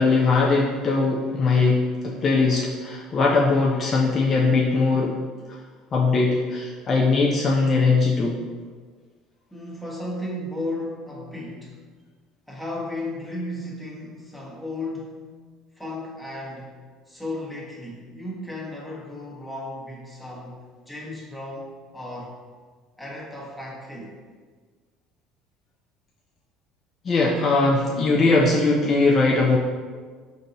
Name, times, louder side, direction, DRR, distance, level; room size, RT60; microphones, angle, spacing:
voice 1, 0.0-5.2 5.9-8.4 27.0-29.6, left 3 dB, 35° left, -2 dB, 0.4 m, -20 dB
voice 2, 9.5-11.8 12.5-15.3 15.8-16.8 17.1-22.4 23.0-24.2, left 1 dB, 5° left, -4 dB, 1.0 m, -34 dB
5.1 x 2.6 x 2.8 m, 1.5 s
supercardioid pair, 115°, 0 cm